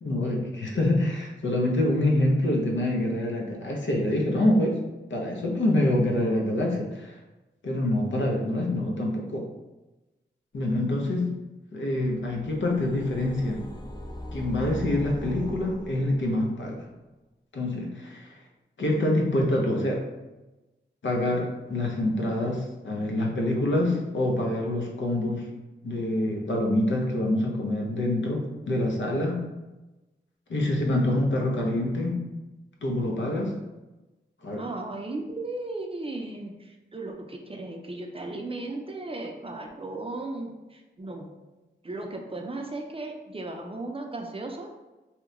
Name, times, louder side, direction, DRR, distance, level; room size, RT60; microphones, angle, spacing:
voice 1, 0.0-4.8 5.1-7.2 7.6-9.4 10.5-11.4 11.7-13.6 14.3-16.9 17.5-18.3 18.8-20.0 21.0-25.5 25.8-29.4 30.5-32.2 32.8-33.6 34.4-34.7, left 1 dB, 80° left, -1 dB, 0.6 m, -26 dB
sound 1, 12.0-16.6, left 1 dB, 20° left, 0.4 m, -40 dB
voice 2, 34.6-41.3 41.8-44.7, right 2 dB, 30° right, 2 dB, 0.5 m, -36 dB
2.8 x 2.1 x 3.7 m, 1.1 s
wide cardioid pair, 65°, 19 cm